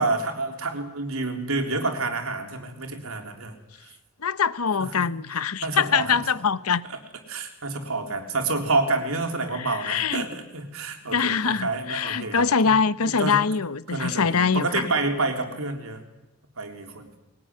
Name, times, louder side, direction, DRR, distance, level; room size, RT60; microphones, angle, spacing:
voice 1, 0.0-3.5 5.0-5.1 5.6-6.1 6.9-7.0 7.3-12.7 13.0-13.4 13.9-16.0 16.6-17.1, right 3 dB, 75° right, 3.6 m, -28 dB
voice 2, 4.2-6.9 9.5-10.3 11.1-14.9, left 6 dB, 85° left, 0.9 m, -23 dB
21.0 x 18.5 x 9.7 m
head